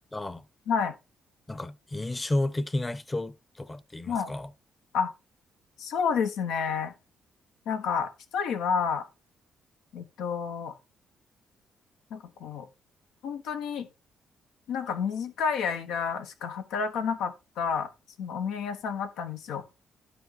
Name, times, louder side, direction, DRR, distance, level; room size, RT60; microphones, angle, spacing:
voice 1, 0.1-0.4 1.5-4.5, left 1 dB, 20° left, 0.8 m, -32 dB
voice 2, 5.8-6.9 7.6-9.1 9.9-10.7 12.1-12.7 13.2-13.9 14.7-17.9 18.2-19.7, left 6 dB, 90° left, 1.3 m, -30 dB
11.0 x 4.5 x 4.0 m
cardioid pair, 90°, 0 cm